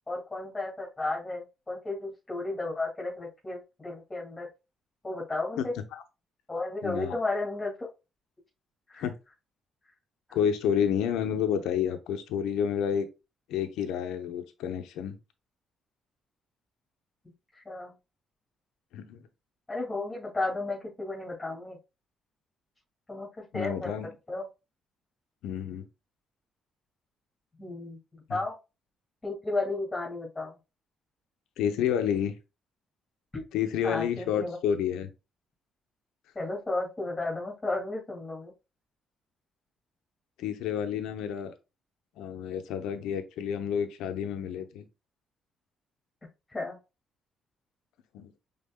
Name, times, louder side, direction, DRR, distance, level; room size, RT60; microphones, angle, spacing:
voice 1, 0.1-4.5 5.0-5.7 6.5-7.9 8.9-9.1 17.7-17.9 19.7-21.8 23.1-23.3 23.5-23.9 24.3-24.4 27.6-28.0 28.3-28.5 29.2-30.6 33.3-33.4 33.8-34.6 36.3-38.5 46.5-46.8, left 2 dB, 20° left, 2.4 m, -33 dB
voice 2, 6.8-7.1 9.0-9.1 10.3-13.1 13.5-15.2 18.9-19.2 23.5-24.1 25.4-25.8 28.3-28.4 31.6-32.3 33.5-35.1 40.4-41.5 42.2-44.8 48.1-48.3, left 8 dB, 75° left, 0.7 m, -29 dB
5.3 x 3.7 x 2.2 m
hypercardioid pair, 55°, 0 cm